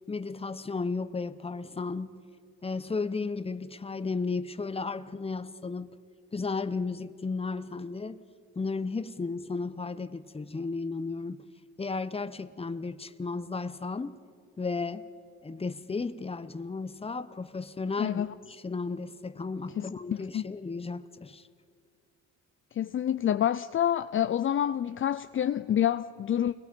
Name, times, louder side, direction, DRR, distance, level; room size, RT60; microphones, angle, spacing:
voice 1, 0.1-2.2 2.6-5.9 6.3-8.2 8.5-11.4 11.8-14.2 14.6-15.1 15.4-21.4, left 4 dB, 20° left, 1.0 m, -34 dB
voice 2, 19.8-20.4 22.7-26.5, left 10 dB, 45° left, 0.5 m, -28 dB
29.5 x 21.5 x 5.3 m
cardioid pair, 90°, 30 cm